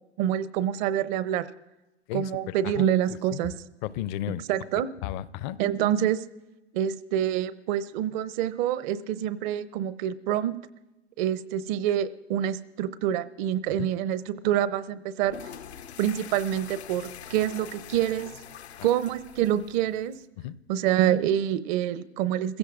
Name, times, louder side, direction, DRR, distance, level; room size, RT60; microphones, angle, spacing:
voice 1, 0.2-1.5 2.1-3.6 4.5-4.9 5.6-6.2 6.7-10.5 11.2-15.4 16.0-18.3 18.8-20.2 20.7-22.6, right 11 dB, 45° right, 15 dB, 0.8 m, -26 dB
voice 2, 2.1-2.8 3.3-3.4 3.8-4.4 5.0-5.6 13.8-13.9 18.8-18.9 20.4-20.6, left 13 dB, 45° left, 17 dB, 0.7 m, -33 dB
sound 1, 15.2-20.2, left 8 dB, 80° left, 0.8 m, -44 dB
29.0 x 16.0 x 2.5 m, 1.0 s
figure-of-eight pair, 90°, 32 cm